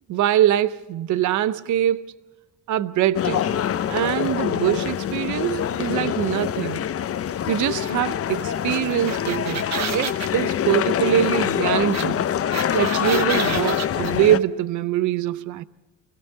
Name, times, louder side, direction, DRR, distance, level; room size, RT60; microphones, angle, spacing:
voice 1, 0.1-2.1 2.7-3.6 3.9-6.9 7.5-12.3 12.7-15.6, right 12 dB, 75° right, 0.6 m, -23 dB
sound 1, 3.1-14.4, left 9 dB, 50° left, 0.7 m, -25 dB
sound 2, 8.9-10.3 11.9-12.0 12.3-14.1, right 7 dB, 60° right, 1.3 m, -30 dB
25.0 x 17.5 x 6.7 m
cardioid pair, 90°, 30 cm